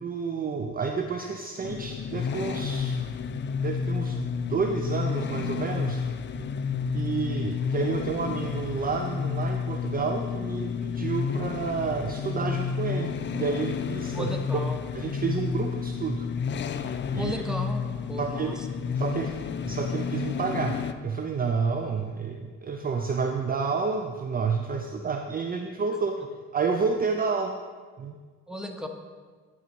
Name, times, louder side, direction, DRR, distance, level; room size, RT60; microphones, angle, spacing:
voice 1, 0.0-3.0 3.6-6.0 6.9-14.6 14.9-16.3 16.7-17.4 18.2-18.6 19.0-19.4 19.6-20.8 21.0-26.2 26.5-27.6 28.0-28.1, right 5 dB, 30° right, 4 dB, 0.5 m, -30 dB
sound 1, 1.6-20.9, left 6 dB, 40° left, 0.4 m, -31 dB
voice 2, 14.1-14.8 17.1-18.7 28.5-28.9, equal, ahead, 4 dB, 0.9 m, -35 dB
10.5 x 4.1 x 4.5 m, 1.5 s
cardioid pair, 90°, 30 cm